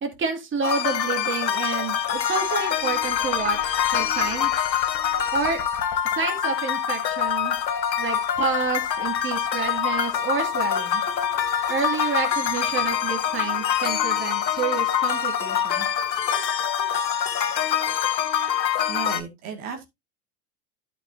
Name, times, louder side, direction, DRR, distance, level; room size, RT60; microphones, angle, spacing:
voice 1, 0.0-4.6 5.3-5.6 6.0-7.6 8.0-11.0 11.7-15.9, right 5 dB, 25° right, 3 dB, 2.7 m, -29 dB
sound 1, 0.6-19.2, left 9 dB, 85° left, 1.2 m, -25 dB
sound 2, 1.3-17.4, left 9 dB, 40° left, 3.0 m, -40 dB
voice 2, 18.9-19.9, right 6 dB, 60° right, 3 dB, 2.4 m, -34 dB
12.5 x 6.0 x 2.8 m, 0.21 s
hypercardioid pair, 95°, 49 cm